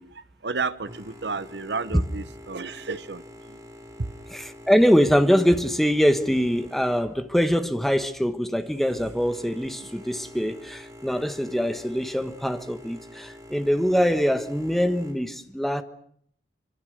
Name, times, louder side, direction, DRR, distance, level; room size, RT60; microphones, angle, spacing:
voice 1, 0.0-3.6 4.0-4.1, right 4 dB, 70° right, 1.0 m, -32 dB
Boat Water vehicle, 0.8-15.1, left 1 dB, 20° right, 4.9 m, -46 dB
voice 2, 4.3-15.8, equal, ahead, 1.4 m, -23 dB
25.5 x 25.0 x 6.7 m
head